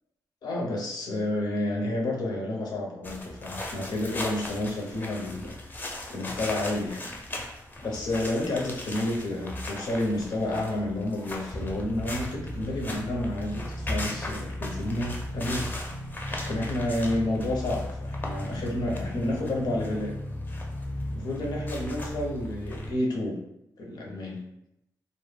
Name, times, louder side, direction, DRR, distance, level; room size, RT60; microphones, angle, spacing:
voice 1, 0.4-5.6 6.1-7.1 7.8-15.7 16.3-20.1 21.1-23.4 23.8-24.4, left 1 dB, 70° left, -1 dB, 0.6 m, -30 dB
sound 1, 3.0-22.9, left 1 dB, 25° left, 0.5 m, -36 dB
2.1 x 2.0 x 3.2 m, 0.83 s
cardioid pair, 100°, 7 cm